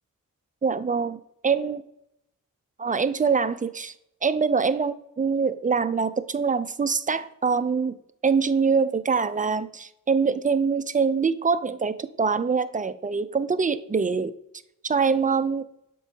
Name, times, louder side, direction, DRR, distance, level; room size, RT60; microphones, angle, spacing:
voice 1, 0.6-1.8 2.8-3.9 4.2-8.0 8.2-14.3 14.8-15.7, right 5 dB, 25° right, 14 dB, 0.4 m, -24 dB
8.0 x 6.1 x 2.8 m, 0.80 s
wide cardioid pair, 85°, 33 cm